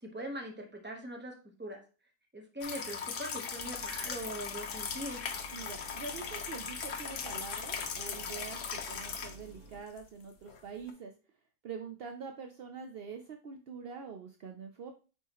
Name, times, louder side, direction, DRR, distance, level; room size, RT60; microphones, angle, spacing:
voice 1, 0.0-1.8 2.3-5.2, right 1 dB, 10° right, 2 dB, 0.8 m, -41 dB
sound 1, 2.6-9.4 10.0-10.1 10.5-10.6 10.9-11.0, left 6 dB, 60° left, 1.1 m, -39 dB
sound 2, 3.5-9.8, right 1 dB, 60° right, 2.0 m, -53 dB
voice 2, 5.5-11.1 11.6-14.9, right 5 dB, 80° right, 4 dB, 0.5 m, -45 dB
8.7 x 3.6 x 3.0 m, 0.35 s
omnidirectional pair, 1.7 m